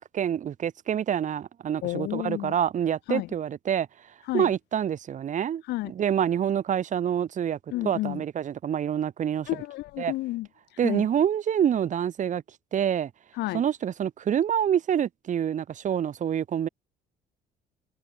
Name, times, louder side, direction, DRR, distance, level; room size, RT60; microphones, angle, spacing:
voice 1, 0.0-3.9 4.3-9.6 10.0-10.1 10.8-12.4 12.7-13.1 13.5-16.7, right 9 dB, 45° right, 1.7 m, -27 dB
voice 2, 1.8-2.5 3.1-3.3 4.3-4.5 5.7-5.9 7.7-8.2 9.5-10.5 10.8-11.0 13.4-13.6, left 18 dB, 85° left, 2.1 m, -30 dB
cardioid pair, 110°, 17 cm